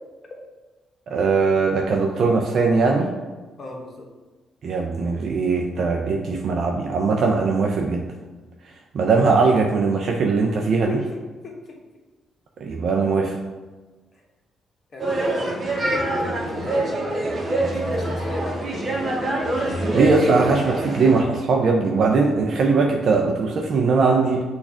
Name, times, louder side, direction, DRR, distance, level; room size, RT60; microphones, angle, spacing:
voice 1, 1.1-3.1 4.6-8.1 8.9-11.0 12.6-13.4 19.6-24.4, right 4 dB, 60° right, 1 dB, 0.4 m, -20 dB
voice 2, 3.6-4.1 10.8-11.2 11.4-11.5 14.9-18.8, left 2 dB, 45° left, 0 dB, 1.1 m, -35 dB
sound 1, 15.0-21.2, right 1 dB, 45° right, 0.9 m, -25 dB
6.2 x 2.4 x 3.5 m, 1.3 s
cardioid pair, 90°, 0 cm